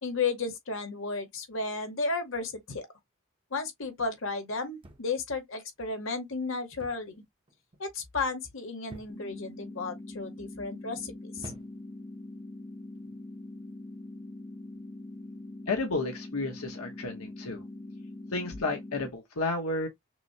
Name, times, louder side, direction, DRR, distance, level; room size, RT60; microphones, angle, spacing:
voice 1, 0.0-2.9 3.5-7.2 7.8-11.5, left 4 dB, 65° left, 1.1 m, -33 dB
sound 1, 4.8-5.3 6.8-7.2 7.5-7.9 8.9-9.4 10.2-10.5 11.4-12.0 12.9-13.2, right 2 dB, 25° right, 0.6 m, -49 dB
sound 2, 9.1-19.1, left 2 dB, 15° left, 0.3 m, -43 dB
voice 2, 15.7-17.6 18.3-19.9, left 3 dB, 85° left, 1.0 m, -32 dB
6.0 x 2.1 x 2.7 m
head